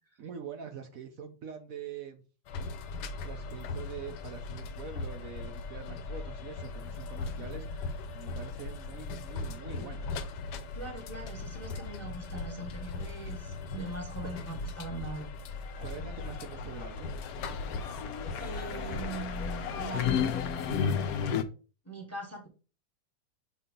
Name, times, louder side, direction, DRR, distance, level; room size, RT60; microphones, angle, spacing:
voice 1, 0.2-2.2 3.2-10.2 14.2-14.3 15.8-17.1, right 7 dB, 65° right, 1.1 m, -44 dB
sound 1, 2.5-21.3, left 3 dB, 90° left, 1.3 m, -39 dB
voice 2, 10.7-15.3 18.4-21.0 21.8-22.5, right 2 dB, 10° left, 0.9 m, -41 dB
sound 2, 15.8-21.4, left 8 dB, 70° left, 1.1 m, -33 dB
6.7 x 2.8 x 5.1 m
omnidirectional pair, 1.8 m